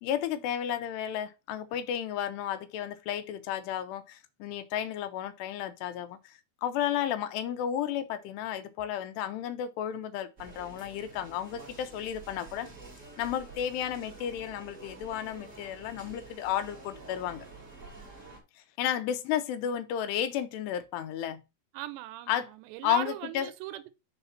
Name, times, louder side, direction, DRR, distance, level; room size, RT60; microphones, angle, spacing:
voice 1, 0.0-6.3 6.6-12.7 13.2-17.5 18.8-21.4 22.3-22.5 22.8-23.5, left 10 dB, 85° left, 2.8 m, -33 dB
sound 1, 10.4-18.4, right 3 dB, 25° right, 2.1 m, -49 dB
voice 2, 21.7-23.9, right 15 dB, 85° right, 2.8 m, -39 dB
6.9 x 4.1 x 5.7 m
omnidirectional pair, 5.0 m